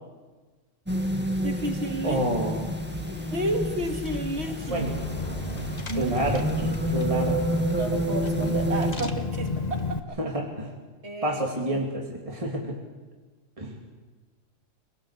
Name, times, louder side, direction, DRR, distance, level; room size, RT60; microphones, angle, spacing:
sound 1, 0.9-8.9, right 1 dB, 10° right, 1.7 m, -29 dB
voice 1, 1.4-2.2 3.3-4.9 5.9-6.8 7.7-10.2 11.0-11.8, right 1 dB, 60° right, 4 dB, 2.6 m, -32 dB
voice 2, 2.0-2.7 4.7-5.0 6.0-6.5 6.9-7.4 10.2-10.7 11.2-12.8 13.6-13.8, right 1 dB, 25° right, 0 dB, 2.5 m, -28 dB
Car / Engine, 2.8-10.0, left 3 dB, 35° left, 1.5 m, -33 dB
25.5 x 18.5 x 8.2 m, 1.3 s
omnidirectional pair, 1.3 m